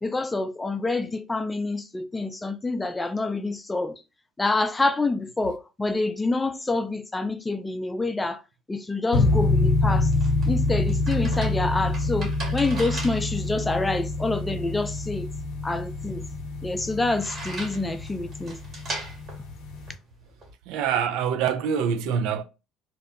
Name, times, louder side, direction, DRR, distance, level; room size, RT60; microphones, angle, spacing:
voice 1, 0.0-4.0 4.4-8.4 8.7-10.1 10.5-15.3 15.6-16.3 16.6-18.6, left 2 dB, 15° left, 0.4 m, -27 dB
sound 1, 9.1-19.9, left 2 dB, 75° left, 0.5 m, -26 dB
sound 2, 9.7-20.5, right 2 dB, 50° right, 1.4 m, -40 dB
voice 2, 20.7-22.4, right 7 dB, 75° right, 0.3 m, -25 dB
2.7 x 2.1 x 2.5 m
supercardioid pair, 75°, 0 cm